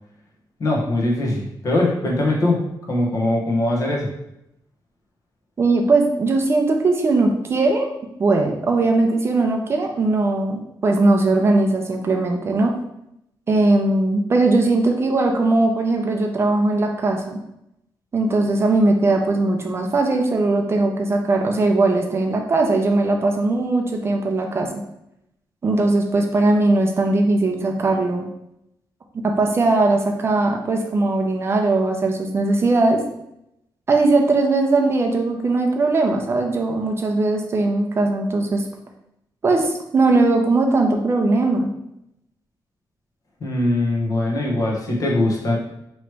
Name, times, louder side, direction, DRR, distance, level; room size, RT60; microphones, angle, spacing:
voice 1, 0.6-4.1 43.4-45.6, left 1 dB, 50° left, -2 dB, 1.0 m, -21 dB
voice 2, 5.6-7.9 8.2-12.7 13.5-17.4 18.1-24.8 25.6-28.3 29.2-33.0 33.9-38.6 39.4-41.7, right 2 dB, 30° right, 2 dB, 0.5 m, -19 dB
3.1 x 3.0 x 4.6 m, 0.82 s
wide cardioid pair, 175°, 8 cm